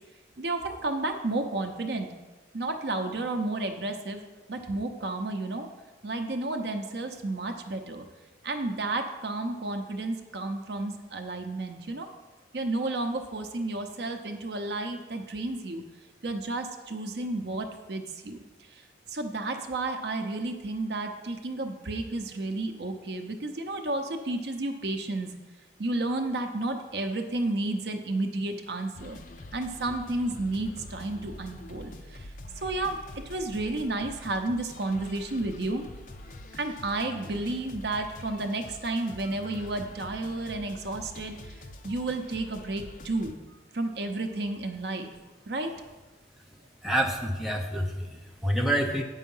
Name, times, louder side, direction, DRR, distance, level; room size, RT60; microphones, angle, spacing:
voice 1, 0.4-2.1 2.5-4.2 4.5-5.7 6.0-8.0 8.4-12.1 12.5-15.8 16.2-18.4 18.7-18.8 19.1-25.3 25.8-29.2 29.5-32.3 32.6-33.0 33.3-35.8 36.5-43.4 43.7-45.1 45.5-45.7, right 2 dB, 65° right, 5 dB, 0.7 m, -32 dB
sound 1, 28.9-43.3, left 2 dB, 45° left, 0.6 m, -45 dB
voice 2, 46.8-49.0, right 1 dB, ahead, 0 dB, 0.7 m, -27 dB
8.4 x 5.6 x 5.5 m, 1.2 s
head